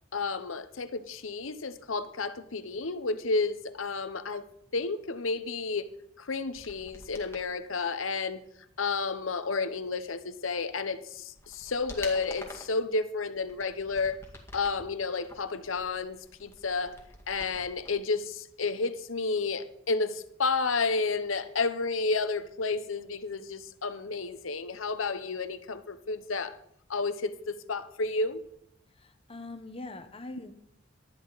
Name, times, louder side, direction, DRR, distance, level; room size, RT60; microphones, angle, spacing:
voice 1, 0.1-4.5 4.7-5.9 6.2-8.4 8.8-14.2 14.5-17.0 17.3-26.6 26.9-28.4, left 4 dB, 85° left, 11 dB, 1.0 m, -31 dB
sound 1, 6.5-7.5 10.5-10.6 11.1-12.8 13.4-14.8 15.2-17.9 18.2-18.3, left 2 dB, 15° left, 2.0 m, -47 dB
voice 2, 28.9-30.5, left 2 dB, 30° left, 8 dB, 1.1 m, -42 dB
19.0 x 12.5 x 4.1 m, 0.76 s
head